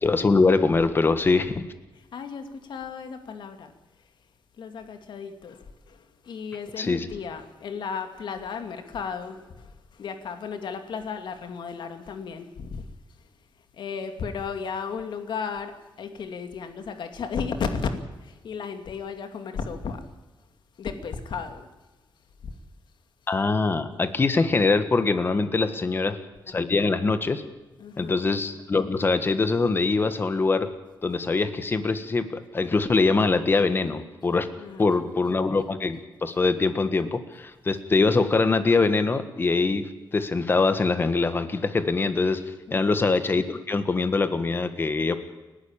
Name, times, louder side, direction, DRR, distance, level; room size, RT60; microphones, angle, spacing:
voice 1, 0.0-1.7 6.8-7.1 23.3-26.2 26.5-27.4 28.0-30.7 31.0-34.5 34.8-42.4 42.7-45.2, left 3 dB, 25° left, 1.5 m, -23 dB
voice 2, 1.9-4.3 4.5-20.1 20.7-21.7 22.4-22.6 25.6-26.0 27.8-28.2 31.1-31.2 34.6-35.0 37.7-37.8 40.2-40.3 42.7-43.0, left 5 dB, 70° left, 2.5 m, -35 dB
30.0 x 12.0 x 8.9 m
wide cardioid pair, 170°, 8 cm